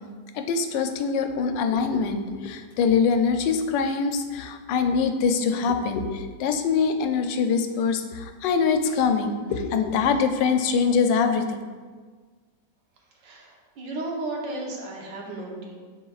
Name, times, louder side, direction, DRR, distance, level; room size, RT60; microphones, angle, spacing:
voice 1, 0.3-11.6, left 5 dB, 90° left, 7 dB, 1.2 m, -24 dB
voice 2, 13.2-15.7, right 2 dB, 90° right, -1 dB, 1.7 m, -34 dB
9.9 x 4.1 x 2.4 m, 1.5 s
omnidirectional pair, 1.9 m